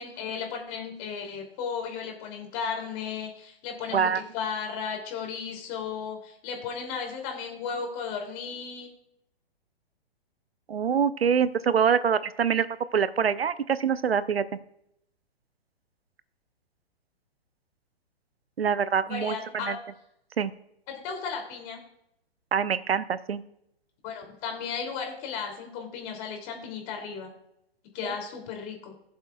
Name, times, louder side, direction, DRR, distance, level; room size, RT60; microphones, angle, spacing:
voice 1, 0.0-8.9 19.1-19.8 20.9-21.8 24.0-27.3 27.9-28.9, left 6 dB, 35° left, 2 dB, 2.9 m, -35 dB
voice 2, 3.9-4.2 10.7-14.4 18.6-19.8 20.4-20.5 22.5-23.4 28.0-28.1, right 7 dB, 80° right, 15 dB, 0.7 m, -25 dB
20.5 x 7.4 x 2.4 m, 0.78 s
figure-of-eight pair, 120°, 30 cm